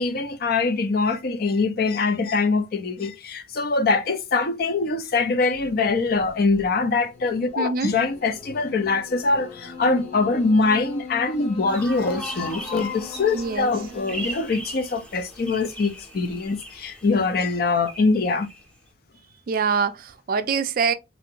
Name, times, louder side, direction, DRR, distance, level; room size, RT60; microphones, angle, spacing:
voice 1, 0.0-18.5, left 3 dB, 55° left, 0.5 m, -23 dB
sound 1, 5.5-14.4, left 3 dB, 35° left, 1.2 m, -41 dB
voice 2, 7.6-7.9 13.3-13.7 19.5-20.9, right 5 dB, 50° right, 0.4 m, -24 dB
sound 2, 11.7-18.6, left 1 dB, 5° left, 0.6 m, -38 dB
3.1 x 2.6 x 2.8 m
head